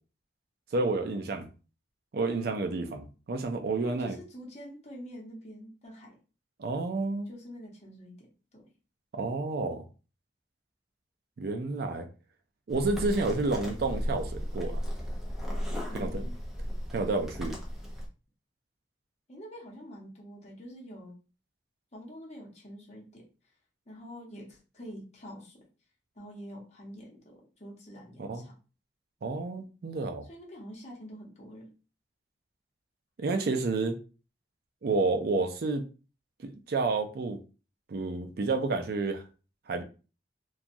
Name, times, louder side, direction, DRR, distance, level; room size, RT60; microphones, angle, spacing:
voice 1, 0.7-1.5 2.1-4.2 6.6-7.3 9.1-9.8 11.4-12.1 12.7-14.8 15.9-16.3 16.9-17.6 28.2-28.4 29.2-30.3 33.2-34.0 34.8-35.8 36.4-37.4 37.9-39.2 39.7-39.8, right 3 dB, 55° right, 0.4 m, -30 dB
voice 2, 3.8-6.2 7.3-8.6 15.9-16.4 19.3-21.2 21.9-23.3 23.9-25.7 26.2-28.5 30.3-31.7, equal, 35° left, 0.9 m, -46 dB
sound 1, 12.7-18.1, equal, ahead, 0.5 m, -35 dB
2.8 x 2.3 x 2.5 m
head